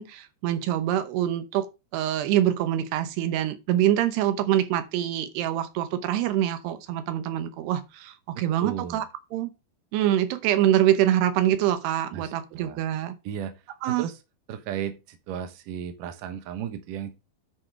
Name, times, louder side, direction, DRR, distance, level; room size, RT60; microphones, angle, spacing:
voice 1, 0.0-1.7 1.9-9.1 9.3-9.5 9.9-13.2 13.8-14.0, right 12 dB, 85° right, 3.0 m, -25 dB
voice 2, 8.4-9.1 12.1-12.8 13.2-14.2 14.5-17.1, right 9 dB, 65° right, 2.5 m, -35 dB
9.9 x 5.1 x 4.8 m
omnidirectional pair, 4.7 m